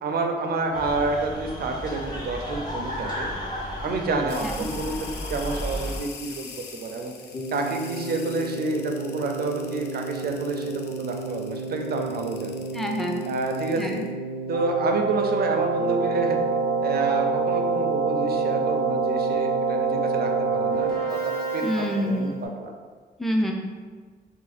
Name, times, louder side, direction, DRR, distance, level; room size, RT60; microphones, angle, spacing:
voice 1, 0.0-3.3 3.8-4.9 5.3-7.1 7.5-12.6 13.3-14.0 14.5-16.4 16.8-21.6 21.9-22.7, right 3 dB, 70° right, 3 dB, 0.5 m, -29 dB
sound 1, 0.7-6.0, equal, 25° left, 0.8 m, -33 dB
sound 2, 4.3-14.1, left 5 dB, 80° left, 0.4 m, -43 dB
Keyboard (musical), 7.3-22.4, right 4 dB, 65° left, 1.1 m, -28 dB
voice 2, 12.7-13.2 13.8-14.0 21.6-22.4 23.2-23.5, equal, ahead, 1 dB, 0.4 m, -26 dB
2.7 x 2.6 x 4.0 m, 1.5 s
cardioid pair, 105°, 17 cm